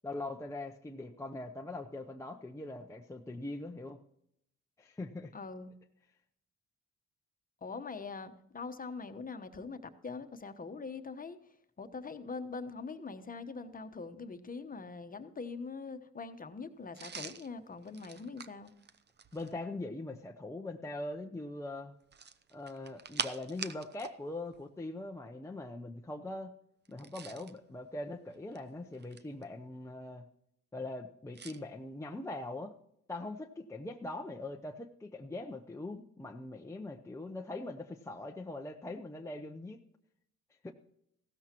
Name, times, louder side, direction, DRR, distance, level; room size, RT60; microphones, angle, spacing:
voice 1, 0.0-4.0 4.8-5.3 19.3-21.9 22.5-26.5 26.9-30.2 30.7-32.7 33.1-39.8 40.6-40.7, left 2 dB, 10° left, 3 dB, 0.7 m, -42 dB
voice 2, 5.3-5.7 7.6-11.4 11.8-18.7, left 4 dB, 30° left, 9 dB, 1.1 m, -43 dB
sound 1, 16.9-19.6 22.0-24.2 24.5-24.6 26.9-27.6 28.3-29.4 31.3-31.6, right 6 dB, 35° right, 0.7 m, -43 dB
15.5 x 13.0 x 3.0 m, 0.76 s
cardioid pair, 90°, 30 cm